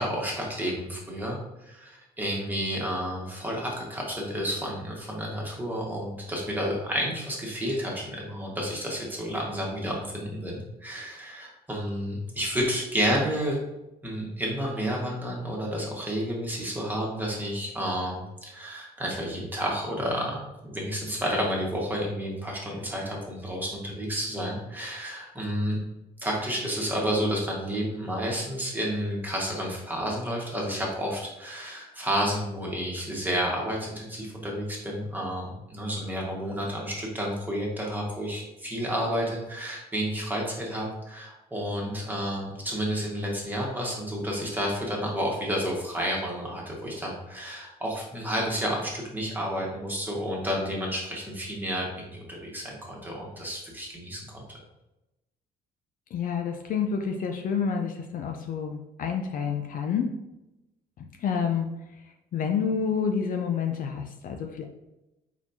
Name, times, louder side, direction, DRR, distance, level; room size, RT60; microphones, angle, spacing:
voice 1, 0.0-13.6 14.0-25.8 26.2-54.4, equal, 10° right, -3 dB, 1.4 m, -31 dB
voice 2, 56.1-60.1 61.0-61.7 62.3-64.6, left 6 dB, 55° left, 4 dB, 0.5 m, -28 dB
4.5 x 4.2 x 2.7 m, 0.95 s
cardioid pair, 110°, 17 cm